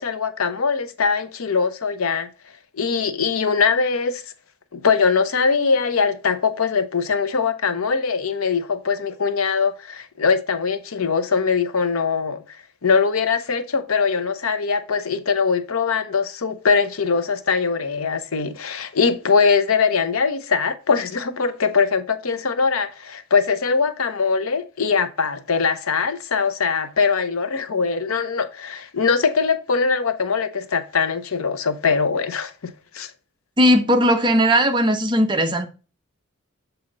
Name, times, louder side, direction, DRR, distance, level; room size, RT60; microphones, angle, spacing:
voice 1, 0.0-2.3 2.8-4.2 4.7-12.4 12.8-33.1, left 5 dB, 85° left, 0.7 m, -22 dB
voice 2, 33.6-35.7, equal, 20° right, 0.7 m, -17 dB
6.8 x 4.2 x 3.8 m
head